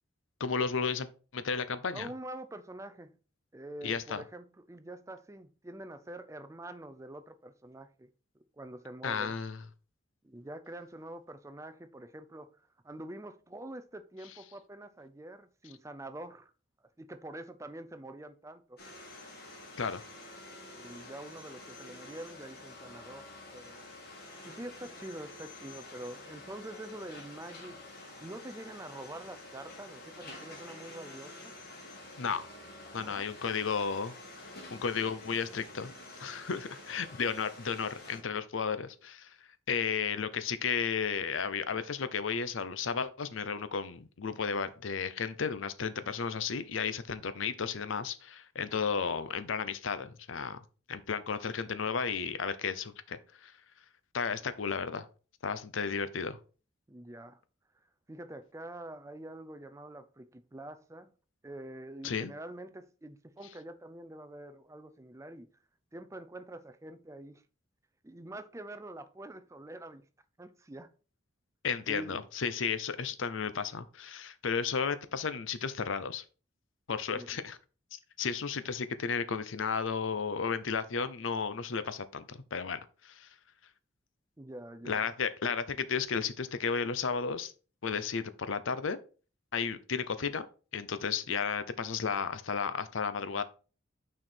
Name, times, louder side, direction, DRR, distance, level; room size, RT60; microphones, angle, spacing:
voice 1, 0.4-1.1 1.3-2.1 3.8-4.2 9.0-9.6 19.8-20.0 32.2-32.5 32.9-34.1 34.7-35.9 36.2-39.4 39.7-50.6 50.9-53.5 54.1-55.1 55.4-56.4 62.0-62.3 71.6-76.2 76.9-77.6 77.9-83.3 84.8-87.5 87.8-89.0 89.5-90.5 90.7-93.4, left 6 dB, 80° left, 0.6 m, -33 dB
voice 2, 1.9-3.2 3.5-8.1 8.4-9.3 10.2-12.5 12.8-16.5 17.0-18.8 20.8-23.3 23.5-23.8 24.4-27.8 28.2-31.5 33.0-33.2 56.9-57.4 58.1-61.1 61.4-65.5 65.9-67.4 68.0-70.0 70.4-70.9 71.9-72.2 77.1-77.3 84.4-85.1, right 1 dB, 15° right, 0.4 m, -45 dB
sound 1, 18.8-38.2, left 2 dB, 50° left, 1.8 m, -49 dB
6.2 x 4.5 x 4.3 m
head